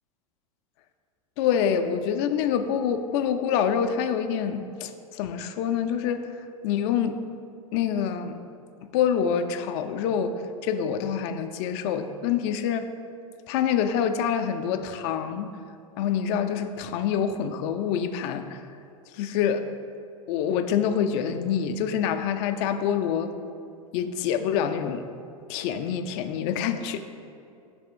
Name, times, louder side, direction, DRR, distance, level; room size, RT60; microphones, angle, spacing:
voice 1, 1.4-7.2 7.7-8.4 8.9-12.9 13.5-15.5 16.0-18.7 19.1-19.7 20.3-23.3 23.9-25.1 25.5-27.0, left 8 dB, 50° left, 8 dB, 0.4 m, -26 dB
5.4 x 3.4 x 5.2 m, 2.6 s
hypercardioid pair, 95°, 19 cm